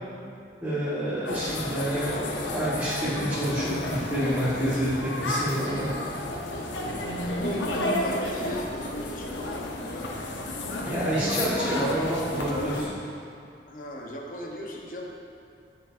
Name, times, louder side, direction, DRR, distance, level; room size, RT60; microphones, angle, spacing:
voice 1, 0.6-5.9 10.8-12.9, right 1 dB, 15° right, -14 dB, 1.4 m, -28 dB
sound 1, 1.3-12.9, left 1 dB, 85° left, 0.8 m, -31 dB
voice 2, 7.5-8.7 9.1-10.1 13.7-15.1, left 1 dB, 50° left, -1 dB, 0.8 m, -37 dB
9.5 x 5.8 x 2.5 m, 2.5 s
head